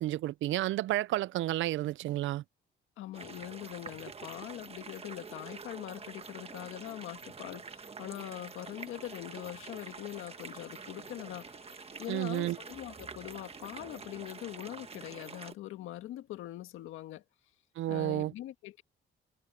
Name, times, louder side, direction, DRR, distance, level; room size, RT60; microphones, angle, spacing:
voice 1, 0.0-2.4 12.1-12.6 17.8-18.3, right 15 dB, 75° right, 0.5 m, -31 dB
voice 2, 3.0-11.5 12.0-17.2 17.9-18.8, left 14 dB, 90° left, 1.8 m, -42 dB
sound 1, 3.1-15.5, right 5 dB, 30° right, 1.5 m, -47 dB
Electric guitar, 8.6-16.6, left 9 dB, 65° left, 4.3 m, -65 dB
cardioid pair, 90°, 20 cm